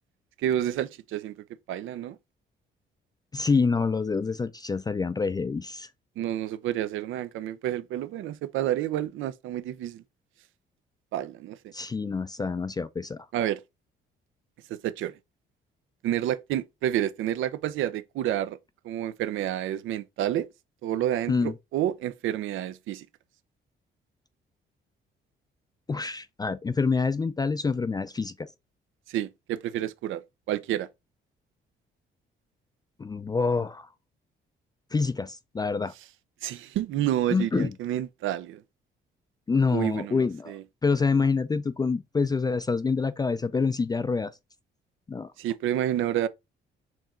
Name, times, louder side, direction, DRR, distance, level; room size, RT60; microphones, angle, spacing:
voice 1, 0.4-1.4 1.7-2.2 6.2-10.0 11.1-11.7 13.3-13.6 14.7-15.1 16.0-18.6 18.8-20.5 20.8-23.1 29.1-30.2 30.5-30.9 36.4-38.6 39.7-40.6 45.4-46.3, right 12 dB, 80° right, 0.5 m, -29 dB
voice 2, 3.3-5.9 11.7-13.3 21.3-21.5 25.9-28.5 33.0-33.9 34.9-35.9 37.3-37.7 39.5-40.5 40.8-44.3 45.1-45.3, left 4 dB, 20° left, 0.3 m, -26 dB
4.5 x 3.0 x 3.7 m
cardioid pair, 90°, 20 cm